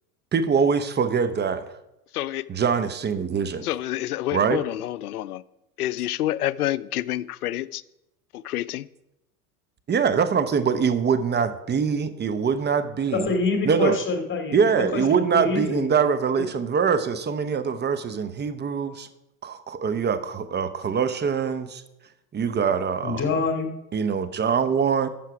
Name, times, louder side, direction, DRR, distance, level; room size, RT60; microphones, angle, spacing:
voice 1, 0.3-1.6 2.5-3.6 4.3-4.6 9.9-13.3 13.6-14.0 14.5-19.1 19.4-21.8 22.3-23.2 23.9-25.1, right 6 dB, 20° right, 11 dB, 1.0 m, -23 dB
voice 2, 2.1-2.5 3.6-5.4 5.8-7.8 8.3-8.9, left 13 dB, 75° left, 20 dB, 0.6 m, -28 dB
voice 3, 13.1-15.9 23.0-23.7, left 3 dB, 25° left, 5 dB, 2.5 m, -26 dB
12.5 x 7.6 x 4.9 m, 0.89 s
figure-of-eight pair, 80°, 45 cm